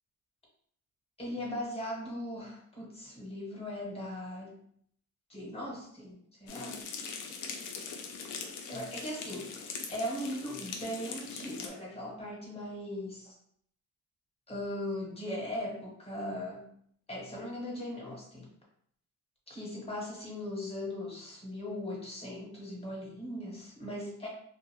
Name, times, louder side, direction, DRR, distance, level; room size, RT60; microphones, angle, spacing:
voice 1, 1.2-4.6 5.3-6.8 8.7-13.3 14.5-16.7 17.1-18.5 19.5-24.3, left 1 dB, 20° left, -4 dB, 1.3 m, -39 dB
sound 1, 6.5-11.7, left 5 dB, 85° left, 0.5 m, -41 dB
2.6 x 2.0 x 3.0 m, 0.66 s
cardioid pair, 90°, 30 cm